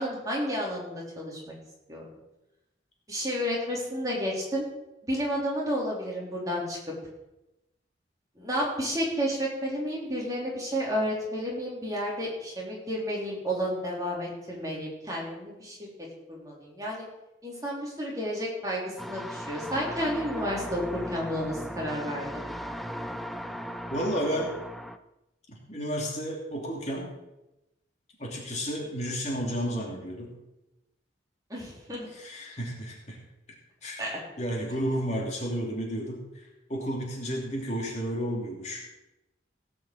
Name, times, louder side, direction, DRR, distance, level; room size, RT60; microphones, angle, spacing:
voice 1, 0.0-1.5 1.9-2.0 3.1-4.7 5.0-6.8 8.4-15.9 16.3-17.0 17.4-22.4 31.5-32.1 34.0-34.1, equal, 20° right, -4 dB, 3.7 m, -31 dB
sound 1, 19.0-25.0, equal, ahead, 0.5 m, -37 dB
voice 2, 23.9-24.5 25.5-27.1 28.2-30.3 32.1-33.2 33.8-34.0 34.4-38.8, equal, 35° left, -2 dB, 2.8 m, -32 dB
17.5 x 6.0 x 7.8 m, 0.95 s
head